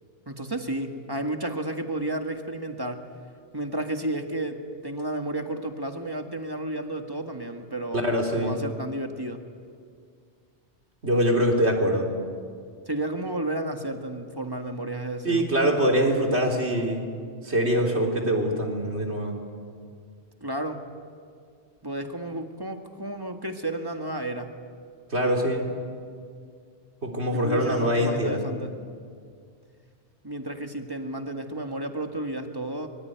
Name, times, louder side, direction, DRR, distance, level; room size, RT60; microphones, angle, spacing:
voice 1, 0.3-3.1 3.5-8.0 8.3-9.4 12.9-15.4 20.4-20.8 21.8-24.5 27.3-28.7 30.2-32.9, right 1 dB, 20° right, 5 dB, 1.8 m, -32 dB
voice 2, 7.9-8.6 11.0-12.1 15.2-17.0 17.4-19.4 25.1-25.7 27.0-28.7, equal, 75° right, 1 dB, 3.8 m, -24 dB
24.5 x 23.0 x 9.4 m, 2.2 s
omnidirectional pair, 1.1 m